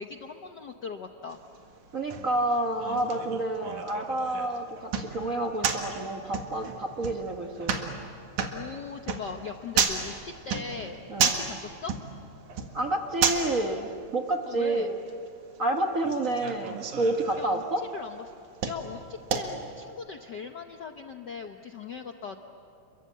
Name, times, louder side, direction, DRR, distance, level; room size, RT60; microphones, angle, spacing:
voice 1, 0.0-1.4 8.4-11.9 14.5-14.9 17.4-17.6 17.9-18.2 18.7-22.4, left 5 dB, 75° left, 5 dB, 0.9 m, -39 dB
sound 1, 1.3-19.9, right 6 dB, 85° right, 3.3 m, -33 dB
voice 2, 1.9-7.9 11.1-11.4 12.7-15.0 15.6-17.8, right 2 dB, 50° right, 3 dB, 1.0 m, -29 dB
30.0 x 23.0 x 8.6 m, 2.5 s
omnidirectional pair, 3.4 m